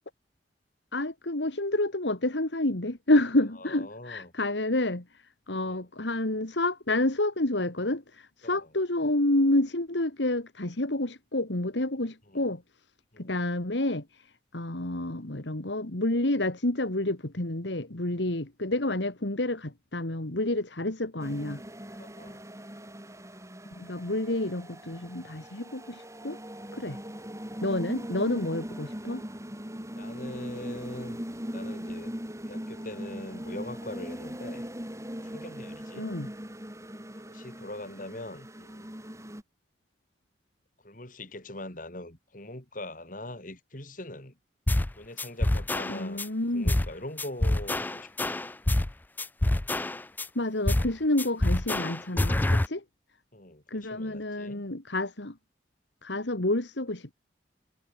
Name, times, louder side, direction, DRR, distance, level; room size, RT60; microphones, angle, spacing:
voice 1, 0.9-5.0 5.5-12.6 13.2-14.1 14.5-21.6 23.8-26.4 26.7-27.0 27.6-29.2 36.0-36.3 45.9-46.7 50.3-52.8 53.7-55.4 56.0-57.1, left 1 dB, 80° left, 2.5 m, -29 dB
voice 2, 3.6-4.3 5.6-5.9 8.4-8.7 12.3-12.5 13.1-13.3 22.0-22.4 26.9-27.0 27.8-28.2 30.0-31.2 31.5-32.1 32.5-34.7 35.2-36.1 37.2-38.9 40.8-44.4 44.9-46.2 46.5-48.3 53.3-54.6, left 1 dB, 45° left, 5.0 m, -42 dB
sound 1, 21.2-39.4, equal, 15° right, 6.6 m, -40 dB
sound 2, 44.7-44.9 45.2-46.3 46.7-46.9 47.2-48.9 49.2-50.3 50.7-50.9 51.2-52.7, left 1 dB, 10° left, 0.3 m, -26 dB
head